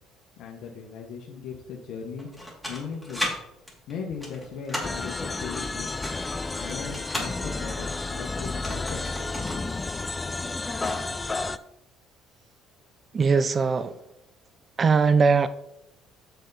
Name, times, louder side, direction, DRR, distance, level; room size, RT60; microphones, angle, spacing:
voice 1, 0.4-3.2 3.9-6.0 6.6-9.1, left 6 dB, 70° left, -1 dB, 1.3 m, -38 dB
sound 1, 2.2-3.3 3.7-5.0 5.8-7.3 8.4-9.7 9.9-10.0 10.4-11.1, left 1 dB, ahead, 2.8 m, -34 dB
sound 2, 4.8-11.6, left 3 dB, 20° left, 0.5 m, -31 dB
voice 2, 13.1-14.0 14.8-15.5, right 5 dB, 35° right, 14 dB, 0.6 m, -20 dB
8.2 x 6.6 x 4.1 m, 0.82 s
cardioid pair, 95°, 0 cm